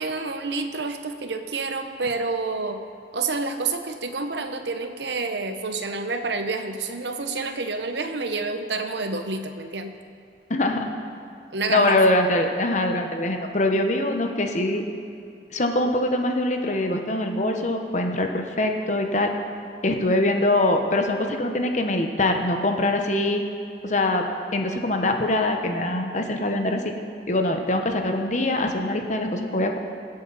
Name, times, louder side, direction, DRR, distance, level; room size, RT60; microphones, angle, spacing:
voice 1, 0.0-2.8 3.1-9.9 11.5-12.0, right 3 dB, 75° right, 7 dB, 1.0 m, -28 dB
voice 2, 10.5-10.9 11.7-14.8 15.5-19.3 19.8-23.4 23.8-24.2 24.5-26.9 27.3-29.8, left 1 dB, 45° left, 4 dB, 1.0 m, -23 dB
23.5 x 8.0 x 4.1 m, 2.4 s
head